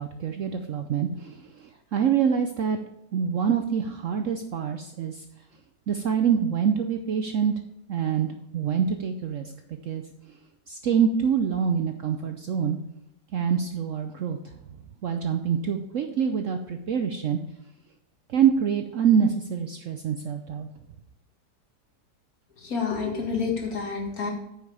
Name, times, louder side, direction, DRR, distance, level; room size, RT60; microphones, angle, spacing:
voice 1, 0.0-1.6 1.9-2.8 3.1-5.2 5.9-7.6 7.9-9.5 9.8-10.0 10.7-12.8 13.3-14.5 15.0-17.4 18.3-20.7 23.3-23.5, right 7 dB, 65° right, 6 dB, 0.8 m, -25 dB
voice 2, 22.6-24.3, left 5 dB, 55° left, 1 dB, 2.2 m, -28 dB
8.8 x 5.7 x 4.8 m, 0.83 s
omnidirectional pair, 1.8 m